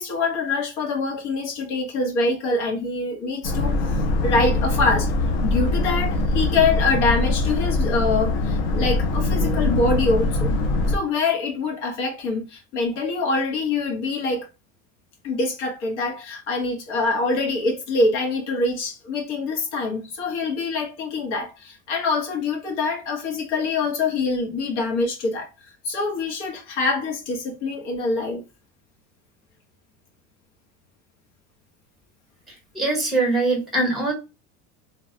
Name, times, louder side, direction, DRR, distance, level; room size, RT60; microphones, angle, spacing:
voice 1, 0.0-3.8 4.2-5.1 5.4-10.5 10.9-14.5 15.2-25.5 25.8-28.4, left 3 dB, 85° left, 1.2 m, -24 dB
Boat Water vehicle, 3.4-11.0, left 2 dB, 60° left, 0.8 m, -22 dB
voice 2, 32.8-34.1, right 2 dB, ahead, 0.7 m, -22 dB
3.1 x 2.2 x 2.7 m
cardioid pair, 175°, 34 cm